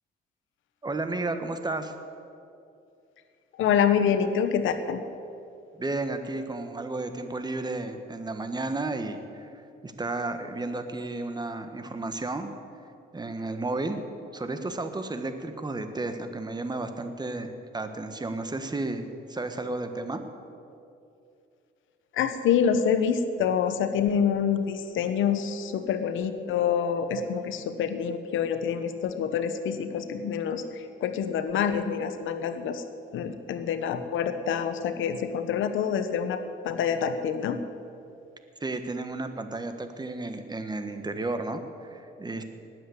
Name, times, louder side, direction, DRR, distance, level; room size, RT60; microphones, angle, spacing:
voice 1, 0.8-1.9 5.8-9.5 9.8-12.5 13.1-14.0 14.3-20.2 38.6-42.4, right 2 dB, 20° right, 8 dB, 1.5 m, -32 dB
voice 2, 3.6-5.0 22.1-32.8 33.1-37.6, left 7 dB, 80° left, 9 dB, 1.1 m, -26 dB
19.5 x 7.8 x 8.0 m, 2.6 s
cardioid pair, 90°, 20 cm